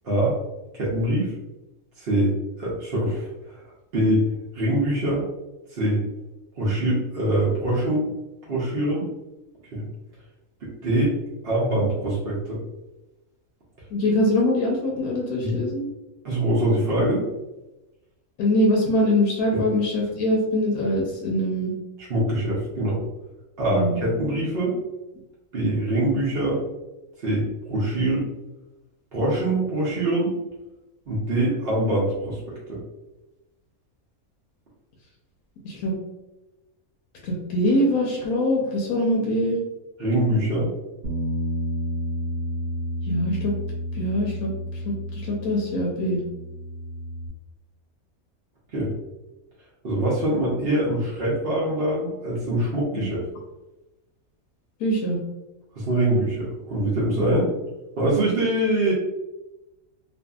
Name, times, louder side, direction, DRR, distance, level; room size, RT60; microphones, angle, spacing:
voice 1, 0.0-0.4 0.7-1.3 2.0-3.6 3.9-4.3 4.5-5.2 5.7-6.0 6.6-8.1 8.5-9.1 9.7-9.9 10.6-11.1 11.4-12.6 15.4-15.5 16.2-17.3 22.1-23.0 23.6-24.8 25.5-26.6 27.2-28.2 29.1-30.3 31.1-32.4 32.7-32.8 40.0-40.7 48.7-48.9 49.8-53.2 55.8-57.4 58.0-58.9, right 1 dB, 50° right, -7 dB, 0.7 m, -23 dB
voice 2, 13.9-15.8 18.4-21.7 23.7-24.0 35.6-35.9 37.2-39.6 43.1-43.5 44.0-44.5 44.9-46.2 52.9-53.1 54.8-55.2 57.2-57.4, left 1 dB, 80° left, -2 dB, 1.1 m, -23 dB
Bass guitar, 41.0-47.3, equal, 70° right, 1.0 m, -31 dB
2.6 x 2.6 x 2.3 m, 1.0 s
omnidirectional pair, 1.5 m